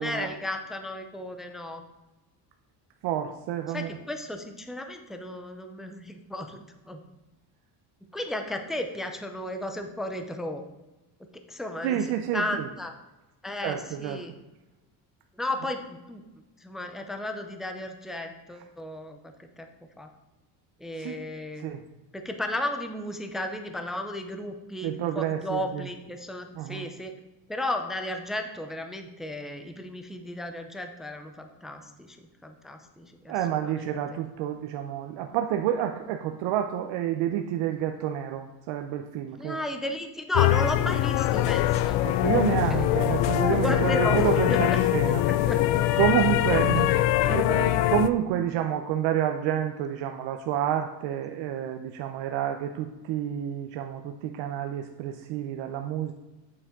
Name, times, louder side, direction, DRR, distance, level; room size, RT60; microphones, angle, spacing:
voice 1, 0.0-1.8 3.7-7.0 8.1-10.6 11.5-12.1 12.3-12.9 13.4-14.3 15.4-16.2 16.6-19.7 20.0-20.1 20.8-21.7 22.1-27.1 27.5-34.2 39.4-42.1 42.7-42.9 43.5-44.2 44.5-44.6 45.5-45.6, left 1 dB, ahead, 6 dB, 0.5 m, -34 dB
voice 2, 3.0-3.9 11.8-12.7 13.6-14.2 21.0-21.2 21.6-21.8 24.8-25.9 26.5-26.9 33.3-39.6 42.0-45.2 46.0-56.1, right 10 dB, 90° right, 6 dB, 0.7 m, -29 dB
sound 1, 40.3-48.1, left 14 dB, 85° left, 0.6 m, -23 dB
8.6 x 7.0 x 3.7 m, 1.1 s
cardioid pair, 155°, 42 cm